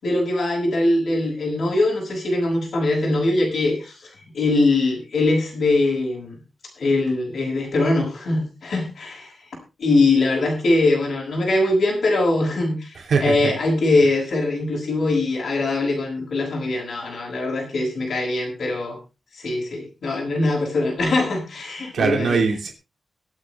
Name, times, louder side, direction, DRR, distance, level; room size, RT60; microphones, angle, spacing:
voice 1, 0.0-6.4 6.8-9.3 9.8-19.0 19.4-22.4, left 2 dB, 65° left, -6 dB, 5.9 m, -22 dB
voice 2, 12.9-13.5 21.9-22.7, right 5 dB, 75° right, 2 dB, 2.9 m, -21 dB
24.0 x 8.4 x 3.4 m, 0.30 s
wide cardioid pair, 160°, 0 cm